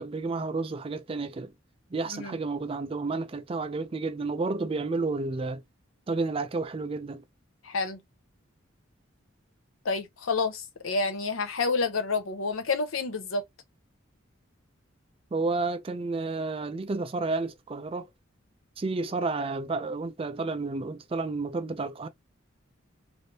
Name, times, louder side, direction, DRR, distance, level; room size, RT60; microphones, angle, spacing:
voice 1, 0.0-1.5 1.9-5.6 6.1-7.2 15.3-18.1 18.8-22.1, right 3 dB, 25° right, 0.3 m, -31 dB
voice 2, 7.6-8.0 9.8-13.4, left 4 dB, 80° left, 0.8 m, -29 dB
3.2 x 2.7 x 2.7 m
head